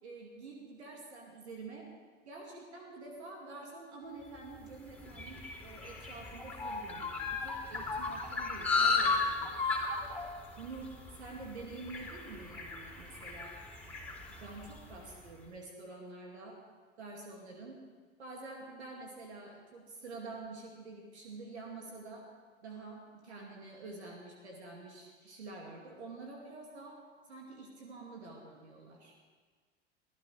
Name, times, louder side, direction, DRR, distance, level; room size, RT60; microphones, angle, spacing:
voice 1, 0.0-1.8 2.3-9.7 10.6-13.5 14.4-16.5 17.0-17.8 18.2-22.2 22.6-27.0 27.3-29.1, right 3 dB, 75° right, 0 dB, 2.5 m, -47 dB
sound 1, 4.5-15.1, left 4 dB, 5° left, 3.9 m, -35 dB
24.5 x 15.0 x 3.4 m, 1.5 s
figure-of-eight pair, 75°, 34 cm